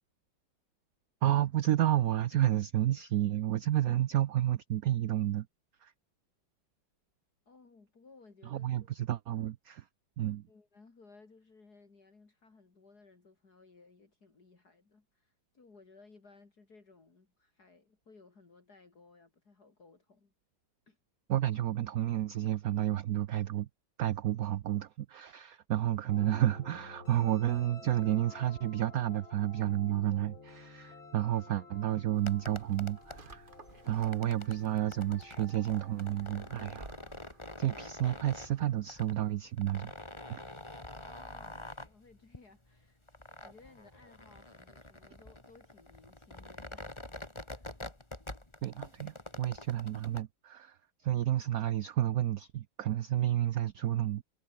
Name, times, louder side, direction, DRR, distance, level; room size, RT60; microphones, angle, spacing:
voice 1, 1.2-5.5 5.8-5.9 8.5-9.9 10.2-10.5 21.3-23.7 24.0-33.5 33.9-36.9 37.6-39.9 40.3-40.4 48.6-54.2, right 12 dB, 65° right, 0.9 m, -31 dB
voice 2, 7.5-8.9 10.5-20.3 20.9-21.0 33.8-34.5 41.0-43.0 43.4-47.9, left 3 dB, 50° left, 3.8 m, -60 dB
sound 1, 26.1-37.7, left 4 dB, 80° left, 5.3 m, -53 dB
sound 2, 32.1-50.2, left 1 dB, 15° left, 2.7 m, -47 dB
sound 3, 32.5-38.9, right 4 dB, 25° right, 1.7 m, -56 dB
omnidirectional pair, 2.2 m